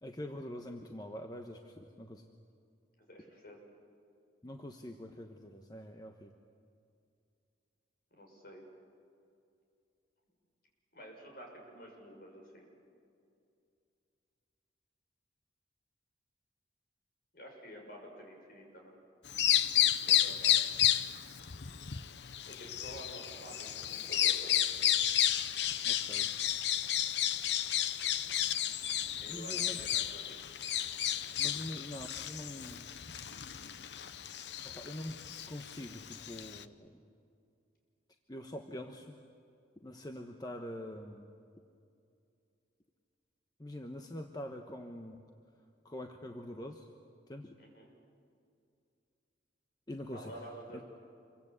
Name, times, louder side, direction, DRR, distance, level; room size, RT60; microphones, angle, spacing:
voice 1, 0.0-2.2 4.4-6.3 25.8-26.3 29.3-29.8 31.4-32.9 34.6-37.0 38.3-39.2 39.8-41.3 43.6-45.2 45.8-46.9 47.3-47.5 49.9-50.5 50.7-50.8, left 1 dB, 20° left, 4 dB, 1.1 m, -44 dB
voice 2, 3.0-3.6 8.1-8.6 10.9-12.7 17.3-18.9 20.1-20.6 22.5-24.7 29.2-30.4 31.4-31.6 47.6-47.9 50.1-50.8, equal, 55° left, 1 dB, 6.8 m, -50 dB
Bird vocalization bird call bird song, 19.3-36.6, left 11 dB, 70° left, 0.8 m, -32 dB
27.0 x 24.0 x 8.3 m, 2.5 s
head